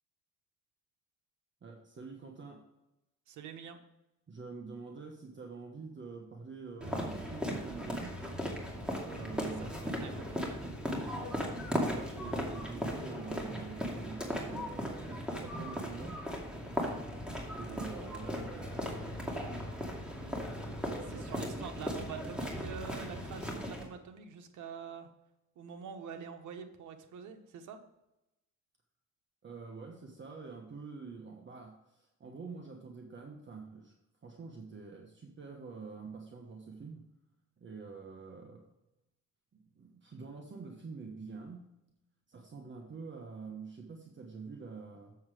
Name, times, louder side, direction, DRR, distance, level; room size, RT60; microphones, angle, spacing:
voice 1, 1.6-2.6 4.3-8.2 9.0-10.3 11.7-16.2 17.5-19.2 20.8-21.7 29.4-33.9 34.2-37.0 37.6-38.6 39.5-41.7 42.3-45.2, right 4 dB, 40° right, 2 dB, 1.3 m, -46 dB
voice 2, 3.3-3.8 9.6-10.6 21.1-25.1 25.6-27.8, right 6 dB, 80° right, 6 dB, 1.1 m, -46 dB
sound 1, 6.8-23.8, equal, 5° right, 2.3 m, -37 dB
7.3 x 7.3 x 4.9 m, 0.90 s
cardioid pair, 90°, 30 cm